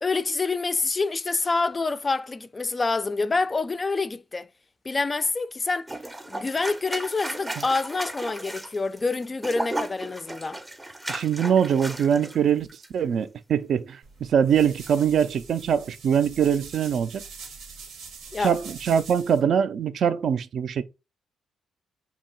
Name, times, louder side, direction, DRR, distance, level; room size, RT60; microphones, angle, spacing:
voice 1, 0.0-4.5 4.9-5.9 6.3-10.6 18.3-18.6, left 3 dB, 30° left, 0.3 m, -27 dB
sound 1, 5.9-12.4 12.7-12.9, right 1 dB, 15° right, 0.6 m, -35 dB
voice 2, 11.1-12.7 12.9-17.2 18.4-20.8, right 8 dB, 65° right, 0.4 m, -23 dB
sound 2, 14.0-19.4, right 5 dB, 85° right, 0.7 m, -44 dB
2.8 x 2.3 x 4.2 m
cardioid pair, 80°, 0 cm